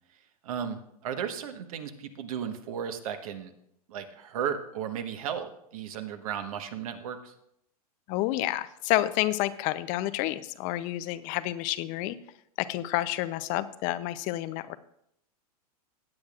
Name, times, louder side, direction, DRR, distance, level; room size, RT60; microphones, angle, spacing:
voice 1, 0.1-3.5 3.9-7.4, right 8 dB, 65° right, 7 dB, 1.3 m, -35 dB
voice 2, 8.1-12.2 12.6-14.8, left 16 dB, 40° left, 14 dB, 0.6 m, -29 dB
17.5 x 8.5 x 2.5 m, 0.75 s
hypercardioid pair, 110°, 20 cm